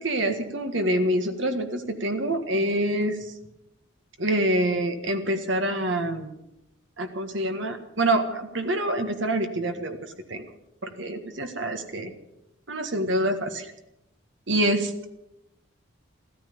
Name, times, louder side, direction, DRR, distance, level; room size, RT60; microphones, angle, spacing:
voice 1, 0.0-3.2 4.2-6.3 7.0-10.0 10.3-10.4 10.8-12.1 12.7-13.7 14.5-15.1, right 1 dB, 65° right, 6 dB, 1.7 m, -26 dB
14.0 x 13.5 x 7.0 m, 0.86 s
head